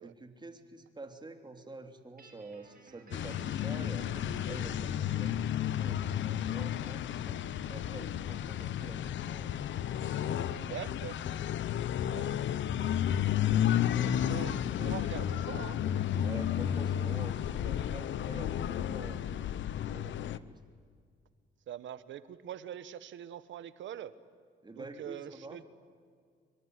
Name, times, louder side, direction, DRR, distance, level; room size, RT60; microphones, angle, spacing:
voice 1, 0.0-7.4 7.7-9.5 10.0-10.8 13.8-14.6 16.2-19.2 19.7-20.6 24.6-25.6, right 3 dB, 20° right, 5 dB, 3.3 m, -48 dB
Guitar, 2.2-5.4, right 4 dB, 45° right, 7.5 m, -56 dB
sound 1, 3.1-20.4, left 10 dB, 70° left, 0.9 m, -32 dB
voice 2, 10.6-11.2 11.9-12.5 14.0-16.4 21.7-24.2 24.7-25.6, right 10 dB, 70° right, 14 dB, 1.3 m, -44 dB
25.0 x 24.0 x 9.7 m, 2.1 s
cardioid pair, 90°, 20 cm